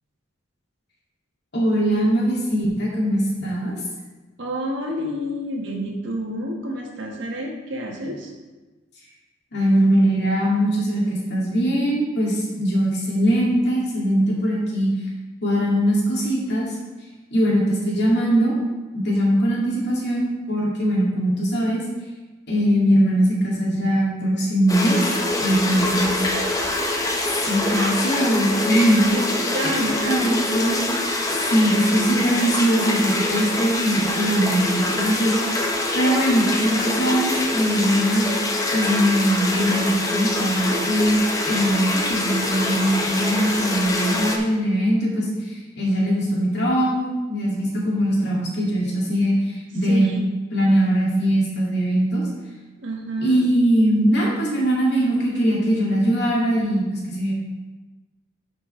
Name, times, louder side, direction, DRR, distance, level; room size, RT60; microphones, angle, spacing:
voice 1, 1.5-3.8 9.5-14.9 15.4-16.8 17.3-18.6 19.0-21.8 22.5-25.0 25.4-26.2 27.5-29.0 29.6-30.8 31.5-38.2 38.7-50.1 50.5-52.2 53.2-57.3, equal, 55° left, -5 dB, 2.3 m, -21 dB
voice 2, 4.4-8.3 25.7-25.8 26.3-26.7 27.7-27.9 29.1-30.3 49.9-50.2 52.8-53.5, right 1 dB, 65° right, 0 dB, 1.4 m, -29 dB
sound 1, 24.7-44.4, left 2 dB, 15° left, 0.7 m, -24 dB
11.0 x 5.5 x 3.2 m, 1.2 s
head